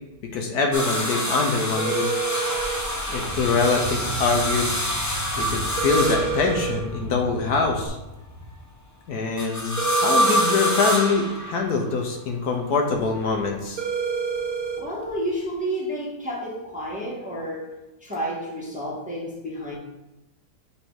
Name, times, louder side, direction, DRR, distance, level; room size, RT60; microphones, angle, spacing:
voice 1, 0.3-2.2 3.1-4.8 5.4-8.0 9.1-13.8, left 4 dB, 70° left, 2 dB, 1.3 m, -24 dB
sound 1, 0.7-7.0 9.4-11.9 12.9-13.7 15.1-15.2, equal, 25° left, 0.3 m, -26 dB
sound 2, 1.8-2.8 5.8-6.8 9.8-10.8 13.8-14.8, right 6 dB, 65° right, 1.1 m, -27 dB
Car / Engine starting, 2.4-7.9, right 2 dB, 35° right, 0.8 m, -35 dB
voice 2, 14.8-17.7 18.0-19.8, equal, 5° right, -5 dB, 1.1 m, -30 dB
7.2 x 3.4 x 4.5 m, 0.99 s
omnidirectional pair, 1.8 m